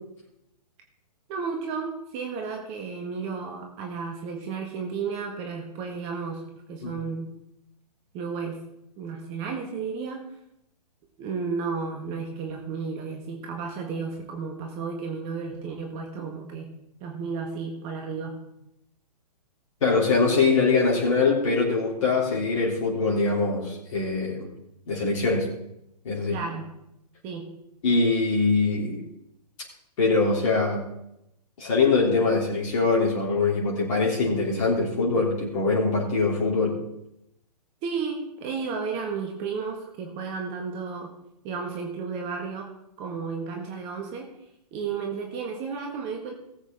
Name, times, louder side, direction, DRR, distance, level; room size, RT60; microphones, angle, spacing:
voice 1, 1.3-7.3 8.1-8.6 9.0-10.2 11.2-16.8 17.0-18.4 26.3-26.7 27.2-27.5 37.8-41.1 41.4-42.7 43.0-44.3 44.7-46.3, right 5 dB, 30° right, 2 dB, 1.7 m, -33 dB
voice 2, 19.8-24.5 24.9-25.5 26.0-26.4 27.8-29.0 30.0-30.8 31.6-36.8, left 4 dB, 50° left, -2 dB, 3.2 m, -23 dB
18.0 x 8.1 x 3.7 m, 0.82 s
figure-of-eight pair, 120°, 21 cm